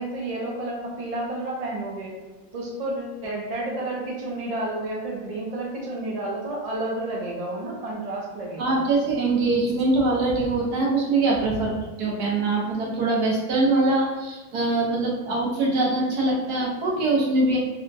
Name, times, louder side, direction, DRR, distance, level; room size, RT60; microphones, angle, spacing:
voice 1, 0.0-2.1 2.5-8.8 11.6-11.7, right 2 dB, 35° right, -4 dB, 0.6 m, -31 dB
voice 2, 8.6-11.7 12.0-17.6, right 2 dB, 85° right, -3 dB, 1.4 m, -23 dB
4.2 x 2.3 x 2.6 m, 1.2 s
omnidirectional pair, 1.6 m